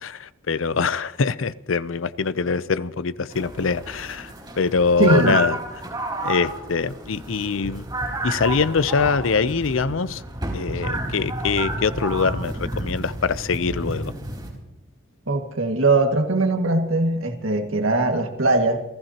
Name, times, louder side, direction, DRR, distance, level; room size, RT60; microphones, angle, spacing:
voice 1, 0.0-5.6 6.2-7.9 8.2-10.2 10.5-14.1, left 5 dB, 80° left, 16 dB, 0.6 m, -23 dB
sound 1, 3.3-14.5, right 1 dB, 20° right, 4.2 m, -30 dB
voice 2, 5.0-5.4 15.3-18.8, right 2 dB, 90° right, 4 dB, 1.9 m, -20 dB
29.5 x 15.0 x 2.9 m, 0.93 s
head